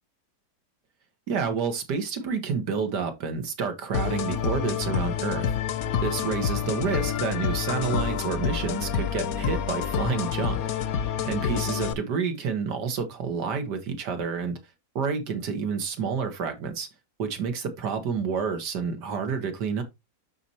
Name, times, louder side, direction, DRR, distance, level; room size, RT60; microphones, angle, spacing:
voice 1, 1.3-5.5 6.0-10.6 11.2-14.6 15.0-16.9 17.2-19.8, right 5 dB, 85° right, 1.9 m, -29 dB
sound 1, 3.9-11.9, left 8 dB, 65° left, 1.1 m, -28 dB
12.0 x 4.2 x 2.9 m
omnidirectional pair, 1.8 m